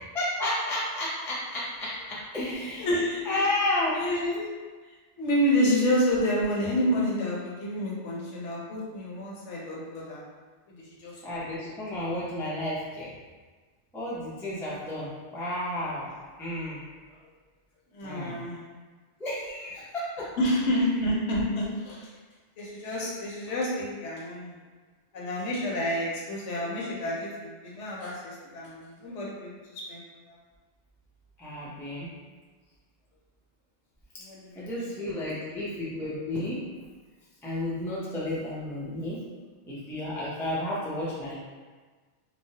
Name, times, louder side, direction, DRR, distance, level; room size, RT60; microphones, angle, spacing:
voice 1, 0.1-2.9 3.2-4.0 11.2-13.1 13.9-16.1 16.4-16.8 18.0-18.4 19.2-20.3 31.4-32.1 34.1-34.2 34.6-36.6 37.4-39.2 39.6-41.3, left 1 dB, 5° left, -8 dB, 0.3 m, -32 dB
voice 2, 2.8-3.4 3.9-4.5 5.2-10.2 10.7-11.1 17.9-18.6 20.4-22.1 22.6-24.6 25.1-30.0 34.2-34.7 35.3-35.6, equal, 80° left, -5 dB, 1.0 m, -29 dB
3.0 x 2.0 x 2.7 m, 1.4 s
omnidirectional pair, 1.2 m